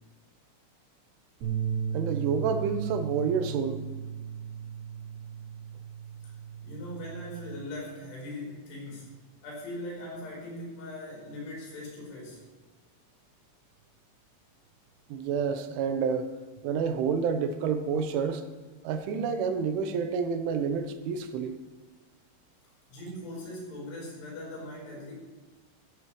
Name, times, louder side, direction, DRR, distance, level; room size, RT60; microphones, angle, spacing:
sound 1, 1.4-7.7, right 8 dB, 70° right, 5.6 m, -36 dB
voice 1, 1.9-3.8 15.1-16.3 16.6-18.4 18.9-21.6, right 6 dB, 85° right, 8 dB, 3.5 m, -29 dB
voice 2, 6.6-9.1 9.4-12.4 22.9-25.1, left 1 dB, 80° left, -3 dB, 7.1 m, -40 dB
15.0 x 14.5 x 3.2 m, 1.3 s
omnidirectional pair, 5.4 m